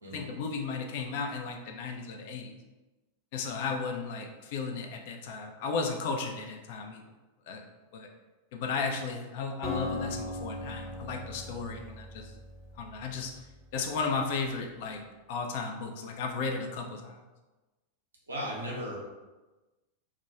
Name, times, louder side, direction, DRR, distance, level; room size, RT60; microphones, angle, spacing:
voice 1, 0.1-2.5 3.3-7.0 7.5-7.6 7.9-8.1 8.5-12.3 12.8-13.3 13.7-15.0 15.3-17.2, left 4 dB, 50° left, 3 dB, 0.3 m, -34 dB
Acoustic guitar, 9.6-13.7, left 2 dB, 15° left, 0.7 m, -39 dB
voice 2, 18.3-19.0, equal, 75° right, -4 dB, 0.7 m, -36 dB
2.3 x 2.2 x 2.8 m, 1.1 s
figure-of-eight pair, 90°, 0 cm